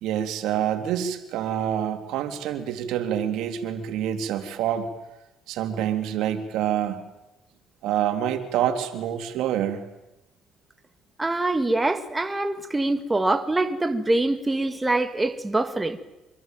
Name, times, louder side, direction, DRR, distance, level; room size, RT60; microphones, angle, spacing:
voice 1, 0.0-4.9 5.5-7.0 7.8-9.8, right 10 dB, 80° right, 3.4 m, -27 dB
voice 2, 11.2-16.0, right 2 dB, 15° right, 2.1 m, -24 dB
26.0 x 23.5 x 9.2 m
cardioid pair, 115°, 0 cm